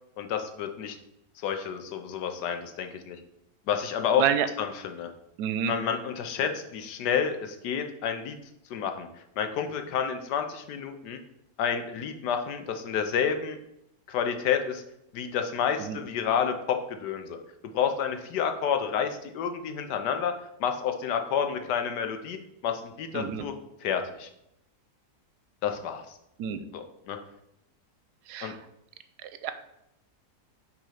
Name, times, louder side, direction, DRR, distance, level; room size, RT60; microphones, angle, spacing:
voice 1, 0.2-1.0 1.4-3.2 3.7-4.2 4.6-5.1 5.7-8.4 8.7-9.1 9.4-11.2 11.6-13.6 14.1-14.8 15.1-17.4 17.7-20.3 20.6-22.4 22.6-23.5 23.8-24.3 25.6-26.0 26.7-27.2 28.4-28.5, left 7 dB, 85° left, 7 dB, 1.4 m, -29 dB
voice 2, 4.2-4.5 5.4-5.8 15.8-16.0 23.1-23.5 26.4-26.6 28.3-28.6 29.2-29.5, right 9 dB, 80° right, 10 dB, 1.1 m, -28 dB
6.0 x 3.7 x 5.7 m, 0.80 s
omnidirectional pair, 1.7 m